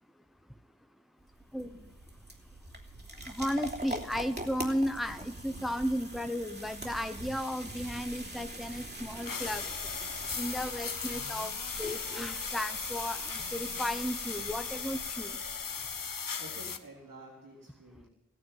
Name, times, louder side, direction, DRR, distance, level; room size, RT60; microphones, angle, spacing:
sound 1, 1.2-16.1, right 1 dB, 30° right, 3.1 m, -43 dB
voice 1, 1.6-1.9 5.8-6.1 15.6-16.1 16.4-18.1, right 1 dB, 85° right, -3 dB, 3.8 m, -52 dB
voice 2, 3.3-9.6 10.3-11.5 11.8-15.3, equal, ahead, 8 dB, 1.0 m, -34 dB
sound 2, 9.3-16.8, left 6 dB, 85° left, 1.1 m, -37 dB
16.5 x 9.6 x 8.8 m, 1.0 s
wide cardioid pair, 60°, 32 cm